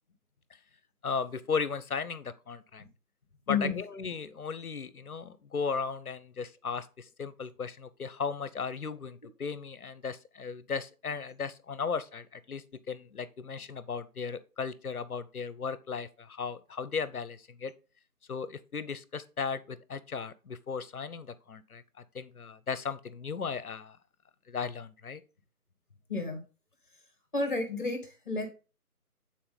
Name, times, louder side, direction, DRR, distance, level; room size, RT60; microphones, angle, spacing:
voice 1, 1.0-2.8 3.5-17.7 18.3-24.0 24.5-25.2, left 5 dB, 70° left, 0.8 m, -36 dB
voice 2, 26.1-26.4 27.3-28.5, left 4 dB, 35° left, 1.6 m, -31 dB
8.6 x 4.2 x 3.9 m
figure-of-eight pair, 180°, 45 cm